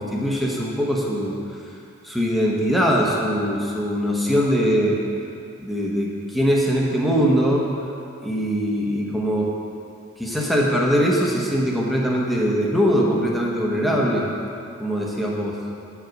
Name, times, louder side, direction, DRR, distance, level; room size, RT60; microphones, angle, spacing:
voice 1, 0.0-1.4 2.0-5.0 5.6-7.7 8.2-9.5 10.2-14.3 14.8-15.5, equal, ahead, -4 dB, 1.0 m, -21 dB
8.6 x 4.8 x 6.5 m, 2.6 s
head